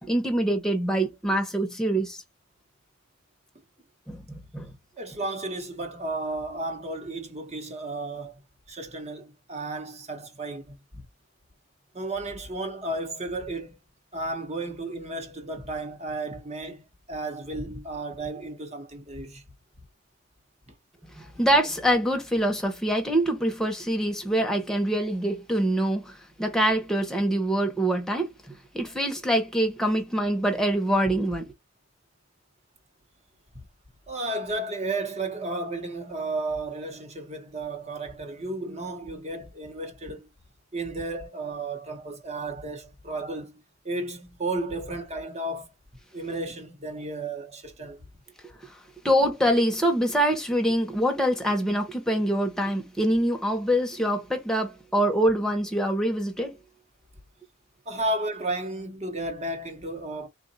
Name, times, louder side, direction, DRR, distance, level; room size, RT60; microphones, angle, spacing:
voice 1, 0.0-2.2 4.1-4.7 21.0-31.5 48.6-48.7 49.0-56.5, right 1 dB, ahead, 1.0 m, -25 dB
voice 2, 5.0-8.4 8.7-10.8 11.9-13.8 14.1-19.4 20.7-20.8 34.1-40.3 40.7-45.7 46.1-48.0 57.9-60.3, right 2 dB, 30° right, 1.1 m, -33 dB
3.8 x 2.5 x 4.0 m
head